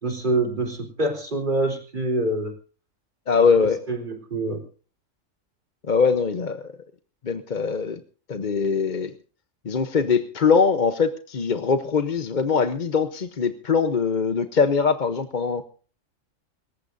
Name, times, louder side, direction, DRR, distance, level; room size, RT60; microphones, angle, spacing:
voice 1, 0.0-2.5 3.4-4.6, right 2 dB, 35° right, 2 dB, 4.2 m, -26 dB
voice 2, 3.3-3.8 5.9-6.7 7.2-8.0 8.3-9.1 9.6-15.6, left 5 dB, 40° left, 9 dB, 0.9 m, -22 dB
26.5 x 15.0 x 2.6 m, 0.39 s
omnidirectional pair, 1.4 m